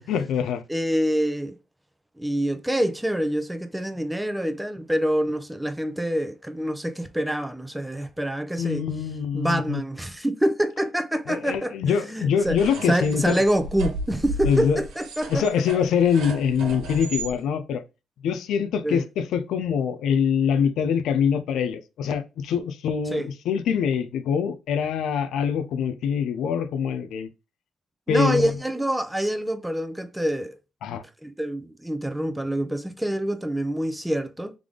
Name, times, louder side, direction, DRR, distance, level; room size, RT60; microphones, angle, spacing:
voice 1, 0.1-0.6 8.6-9.8 11.3-13.4 14.5-14.8 15.3-17.8 18.2-27.3 28.1-28.5 30.8-31.0, left 7 dB, 80° left, 0.5 m, -24 dB
voice 2, 0.7-1.5 2.2-8.8 9.3-12.6 12.9-15.4 18.8-19.0 23.1-23.3 28.1-30.5 31.2-34.5, right 1 dB, 5° right, 0.6 m, -26 dB
sound 1, 12.4-17.3, right 2 dB, 85° right, 1.3 m, -34 dB
3.6 x 3.3 x 3.7 m
cardioid pair, 90°, 0 cm